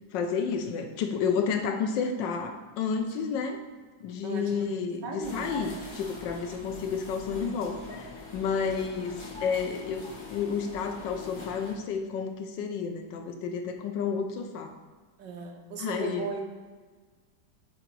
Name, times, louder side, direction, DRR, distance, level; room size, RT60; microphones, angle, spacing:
voice 1, 0.1-3.6 4.0-9.1 9.4-14.7 15.8-16.3, left 6 dB, 90° left, 5 dB, 1.4 m, -31 dB
voice 2, 4.2-5.5 8.6-8.9 14.1-14.2 15.2-16.6, right 5 dB, 80° right, 3 dB, 1.5 m, -37 dB
sound 1, 5.2-11.7, left 2 dB, 20° left, 1.0 m, -43 dB
7.9 x 2.9 x 4.6 m, 1.4 s
omnidirectional pair, 1.9 m